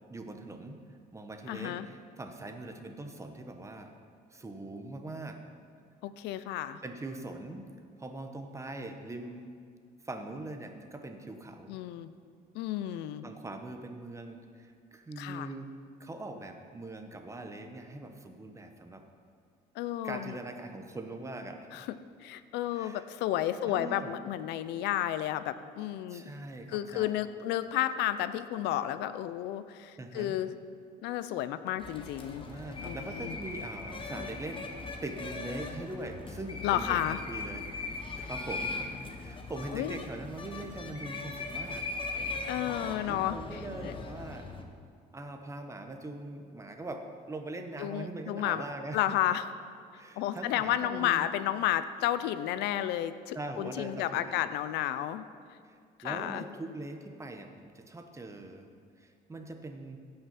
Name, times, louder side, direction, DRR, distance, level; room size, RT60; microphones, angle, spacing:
voice 1, 0.1-0.8 1.1-3.9 4.3-5.4 6.3-6.5 6.8-7.7 8.0-9.5 10.0-11.8 13.2-15.7 16.0-19.0 20.0-21.8 22.7-23.0 23.6-24.1 26.1-27.1 30.0-30.4 32.5-34.7 35.0-41.8 43.1-44.5 45.1-49.2 50.0-51.3 53.3-54.4 55.7-58.7 59.0-60.0, right 2 dB, 15° right, 5 dB, 1.1 m, -42 dB
voice 2, 1.5-1.9 6.0-6.8 11.7-12.1 12.5-13.2 15.2-15.5 19.8-20.4 21.7-22.0 22.2-26.2 26.7-30.5 31.0-32.4 32.8-33.4 36.6-37.2 39.7-40.0 42.5-43.9 47.8-48.6 48.9-49.5 50.2-55.3 56.0-56.4, left 12 dB, 85° left, 13 dB, 0.6 m, -32 dB
sound 1, 31.8-44.6, left 3 dB, 30° left, 1.2 m, -39 dB
16.0 x 5.7 x 5.9 m, 2.1 s
cardioid pair, 110°, 17 cm